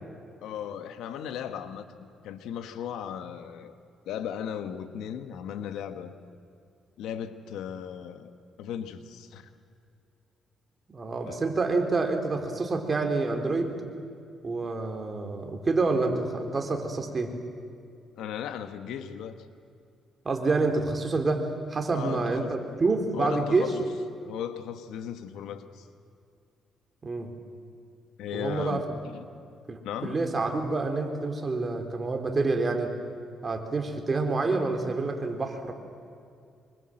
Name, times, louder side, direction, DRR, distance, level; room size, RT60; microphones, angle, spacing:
voice 1, 0.4-1.8 2.2-3.7 4.1-6.1 7.0-8.3 8.6-9.5 11.3-11.4 18.2-19.4 21.9-22.5 23.1-23.9 24.2-25.9 28.2-28.8 29.1-29.2 29.8-30.2, left 9 dB, 85° left, 9 dB, 1.5 m, -36 dB
voice 2, 10.9-13.7 14.4-17.3 20.3-23.7 27.0-27.3 28.3-29.0 29.7-32.9 33.4-35.7, right 3 dB, 30° right, 4 dB, 3.7 m, -28 dB
25.5 x 23.5 x 7.8 m, 2.4 s
cardioid pair, 90°, 0 cm